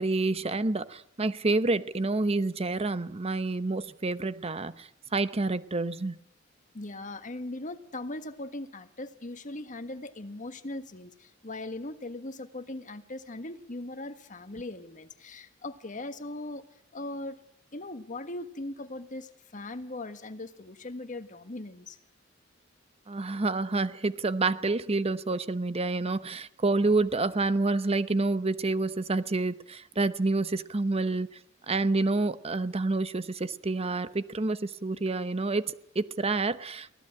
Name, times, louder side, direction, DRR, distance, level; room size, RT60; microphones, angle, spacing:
voice 1, 0.0-6.2 23.1-31.4 31.7-37.0, right 3 dB, 30° right, 0.8 m, -28 dB
voice 2, 6.7-16.6 16.9-17.4 17.7-22.0, left 2 dB, 40° left, 1.5 m, -39 dB
23.5 x 17.5 x 8.8 m
head